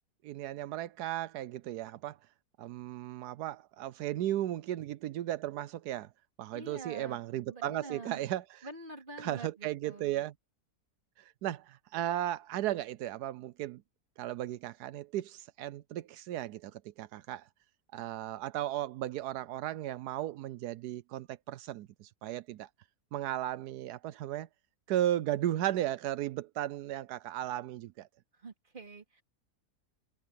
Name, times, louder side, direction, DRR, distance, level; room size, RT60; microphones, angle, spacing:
voice 1, 0.2-2.2 2.6-6.1 6.4-8.7 9.2-10.3 11.2-13.8 14.2-17.5 17.9-22.7 23.1-24.5 24.9-28.1, right 13 dB, 85° right, 1.2 m, -35 dB
voice 2, 6.5-7.2 7.5-8.2 8.6-10.2 28.3-29.2, right 2 dB, 30° right, 2.8 m, -46 dB
omnidirectional pair, 1.7 m